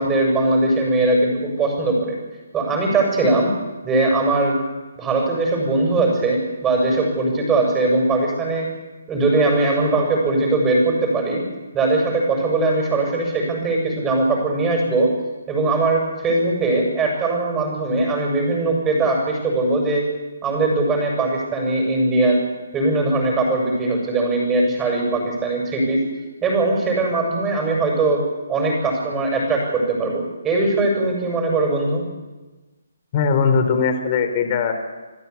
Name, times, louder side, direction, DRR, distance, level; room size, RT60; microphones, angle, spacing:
voice 1, 0.0-2.1 2.5-3.5 3.8-4.6 5.0-8.7 9.1-11.4 11.7-15.1 15.5-20.0 20.4-22.4 22.7-26.0 26.4-28.2 28.5-32.0, right 2 dB, 15° right, 1 dB, 6.9 m, -20 dB
voice 2, 33.1-34.7, left 5 dB, 35° left, 7 dB, 3.4 m, -19 dB
27.0 x 15.0 x 8.4 m, 1.2 s
hypercardioid pair, 150°, 0 cm